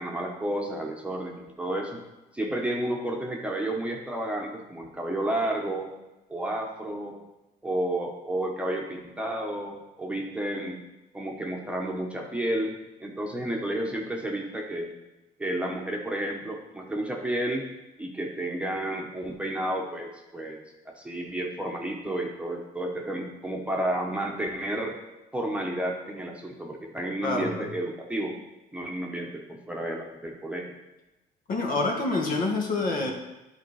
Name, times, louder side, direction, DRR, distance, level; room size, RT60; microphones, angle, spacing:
voice 1, 0.0-2.0 2.3-5.9 6.3-7.1 7.6-10.8 11.1-12.7 13.0-14.9 15.4-17.6 18.0-20.6 21.0-25.0 25.3-28.3 28.7-30.7, right 1 dB, 5° right, 0 dB, 1.1 m, -31 dB
voice 2, 27.2-27.7 31.5-33.1, left 3 dB, 55° left, 1 dB, 1.6 m, -27 dB
10.5 x 3.9 x 4.8 m, 1.0 s
cardioid pair, 110°, 17 cm